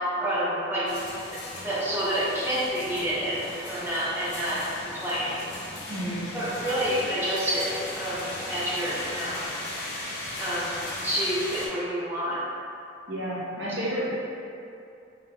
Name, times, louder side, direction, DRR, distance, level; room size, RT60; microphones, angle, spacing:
voice 1, 0.2-0.9 1.6-4.7 5.0-5.4 6.3-9.4 10.4-10.7 11.0-12.4, equal, 10° right, -9 dB, 0.7 m, -28 dB
sound 1, 0.9-11.7, left 1 dB, 55° left, 0.6 m, -37 dB
voice 2, 5.9-6.3 13.1-14.1, right 1 dB, 65° right, -9 dB, 1.0 m, -31 dB
3.6 x 3.3 x 2.3 m, 2.6 s
head